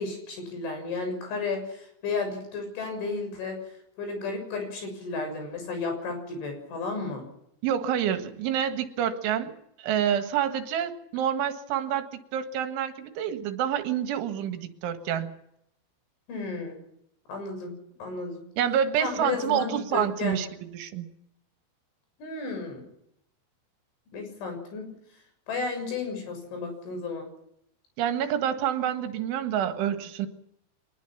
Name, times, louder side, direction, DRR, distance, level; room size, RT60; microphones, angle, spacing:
voice 1, 0.0-3.7 4.0-7.3 16.3-16.8 17.3-18.4 19.0-20.4 22.2-22.8 24.1-24.9 25.5-27.3, left 4 dB, 75° left, 5 dB, 9.0 m, -33 dB
voice 2, 7.6-15.3 18.6-20.5 20.7-21.1 28.0-30.3, right 9 dB, 80° right, 7 dB, 4.0 m, -28 dB
24.5 x 21.0 x 6.0 m, 0.76 s
omnidirectional pair, 5.5 m